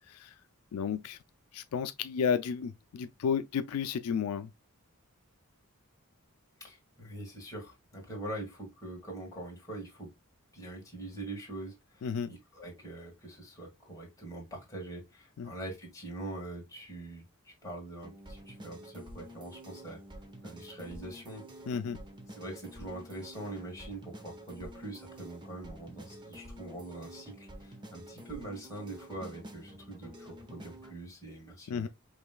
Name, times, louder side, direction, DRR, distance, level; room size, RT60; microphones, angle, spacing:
voice 1, 0.7-1.2 1.5-4.5 12.0-12.3 15.4-15.5 21.7-22.0 31.7-31.9, left 6 dB, 85° left, 0.4 m, -32 dB
voice 2, 6.6-10.1 10.5-20.0 20.4-21.5 22.3-31.9, right 1 dB, 15° left, 1.9 m, -43 dB
sound 1, 18.0-30.9, right 1 dB, 20° right, 0.7 m, -49 dB
4.9 x 3.1 x 2.2 m
head